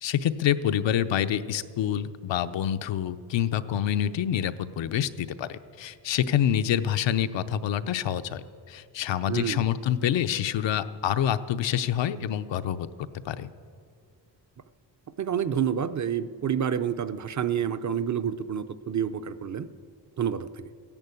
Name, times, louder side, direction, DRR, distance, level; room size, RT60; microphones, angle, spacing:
voice 1, 0.0-12.9 13.2-13.5, left 10 dB, 85° left, 10 dB, 0.8 m, -27 dB
voice 2, 9.3-9.6 15.2-19.7 20.2-20.6, right 8 dB, 40° right, 12 dB, 0.6 m, -28 dB
15.0 x 10.5 x 8.3 m, 2.2 s
wide cardioid pair, 120°, 43 cm